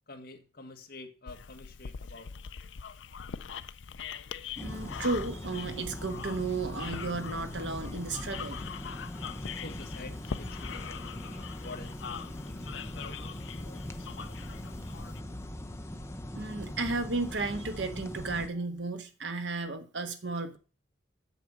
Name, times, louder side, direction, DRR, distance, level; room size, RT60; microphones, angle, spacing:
voice 1, 0.1-2.3 2.6-2.8 9.5-12.0 12.4-14.6, left 2 dB, 50° left, 1.6 m, -49 dB
sound 1, 1.3-15.2, left 7 dB, 70° left, 0.5 m, -43 dB
sound 2, 4.6-18.5, left 1 dB, 15° left, 0.7 m, -41 dB
voice 2, 4.6-8.6 16.3-20.6, right 3 dB, 70° right, 1.4 m, -34 dB
8.1 x 7.7 x 6.0 m
head